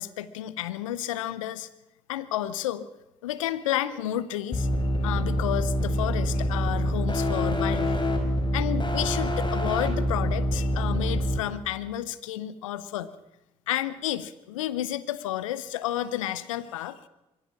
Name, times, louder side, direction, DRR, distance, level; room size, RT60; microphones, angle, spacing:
voice 1, 0.0-1.7 2.1-2.9 3.2-4.7 5.0-8.0 8.5-13.1 13.7-17.1, left 12 dB, 85° left, 16 dB, 0.8 m, -31 dB
sound 1, 4.5-11.4, equal, 30° left, 5.2 m, -26 dB
23.0 x 15.5 x 7.2 m, 0.95 s
hypercardioid pair, 40°, 16 cm